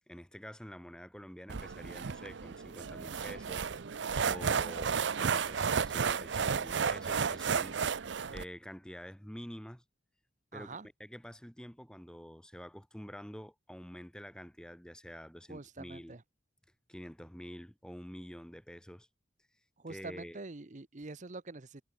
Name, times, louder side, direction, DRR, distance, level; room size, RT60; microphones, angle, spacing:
voice 1, 0.1-3.7 4.2-7.8 8.3-9.8 10.5-16.2 16.9-19.1 19.9-20.4, equal, 5° left, 1.8 m, -48 dB
sound 1, 1.5-8.4, right 6 dB, 75° right, 0.6 m, -33 dB
voice 2, 10.5-10.9 15.5-16.2 19.8-21.8, right 3 dB, 40° right, 0.9 m, -45 dB
head